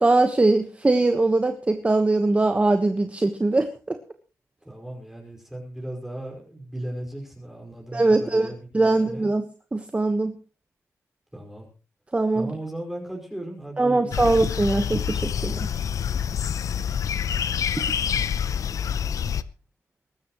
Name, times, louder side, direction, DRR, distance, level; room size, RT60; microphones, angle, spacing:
voice 1, 0.0-4.0 7.9-8.5 8.7-9.4 9.7-10.3 12.1-12.5 13.8-15.7, right 2 dB, 20° right, 7 dB, 1.3 m, -21 dB
voice 2, 4.7-9.3 11.3-11.7 12.3-14.4, right 1 dB, 5° right, -1 dB, 5.3 m, -37 dB
sound 1, 14.1-19.4, left 8 dB, 70° left, 0.7 m, -27 dB
22.5 x 13.0 x 3.1 m, 0.35 s
cardioid pair, 85°, 6 cm